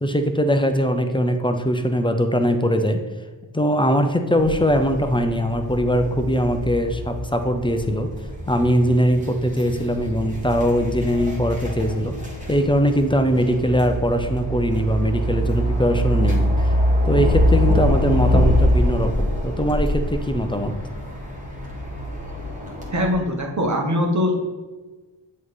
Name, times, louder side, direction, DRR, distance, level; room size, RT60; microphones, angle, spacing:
voice 1, 0.0-3.0 3.5-8.1 8.5-12.2 12.5-16.7 17.0-20.7, equal, 10° left, 6 dB, 0.5 m, -21 dB
sound 1, 4.4-23.1, equal, 15° right, 1.3 m, -24 dB
voice 2, 22.9-24.4, left 1 dB, 35° right, 1 dB, 1.1 m, -21 dB
7.4 x 3.1 x 4.0 m, 1.3 s
wide cardioid pair, 65°, 47 cm